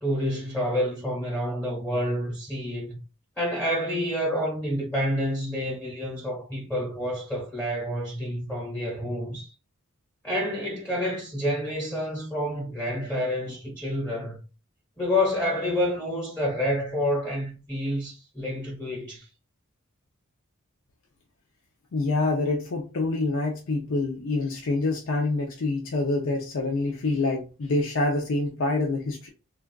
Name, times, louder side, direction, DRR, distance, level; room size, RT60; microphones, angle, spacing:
voice 1, 0.0-3.0 3.4-9.5 10.2-14.4 15.0-19.3, equal, 10° left, 1.0 m, -28 dB
voice 2, 21.9-29.3, left 2 dB, 65° left, 0.5 m, -26 dB
3.4 x 2.4 x 2.2 m
head